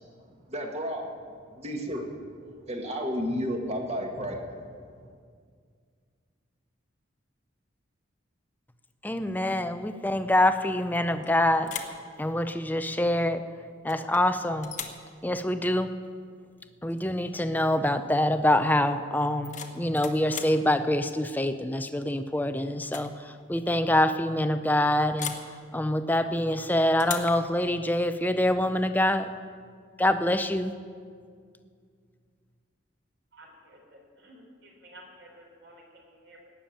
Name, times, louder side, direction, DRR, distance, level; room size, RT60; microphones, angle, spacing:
voice 1, 0.5-1.1 1.6-2.1 2.6-4.6, equal, 30° right, 2 dB, 1.7 m, -32 dB
voice 2, 9.0-11.7 12.2-13.4 13.8-14.7 15.2-15.9 16.8-25.3 25.7-29.3 30.0-30.7, left 1 dB, 10° left, 10 dB, 0.5 m, -25 dB
sound 1, 10.9-11.3 11.6-12.0 13.9-14.2 14.6-15.1 16.9-17.1 17.4-17.8 19.2-20.6 22.1-22.4 22.8-23.1 23.4-23.5 25.2-25.5 27.0-27.4, left 7 dB, 40° left, 1.1 m, -38 dB
voice 3, 33.3-36.5, right 1 dB, 65° right, 0 dB, 3.8 m, -52 dB
17.5 x 7.0 x 9.0 m, 2.1 s
head